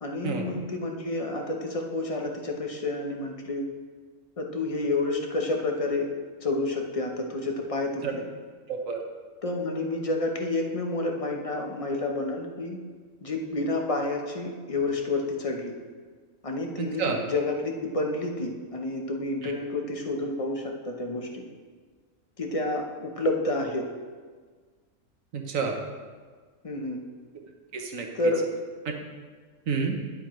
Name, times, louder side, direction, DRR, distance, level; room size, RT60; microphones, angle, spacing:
voice 1, 0.0-3.7 4.4-6.1 6.4-8.3 9.4-12.8 13.2-15.7 16.4-21.4 22.4-23.9 26.6-27.0 28.1-28.5, left 2 dB, 30° left, 2 dB, 0.8 m, -29 dB
voice 2, 16.8-17.2 19.4-19.5 25.3-25.8 27.7-28.1 29.7-30.0, right 5 dB, 70° right, 3 dB, 1.3 m, -29 dB
11.0 x 8.7 x 3.1 m, 1.5 s
omnidirectional pair, 1.5 m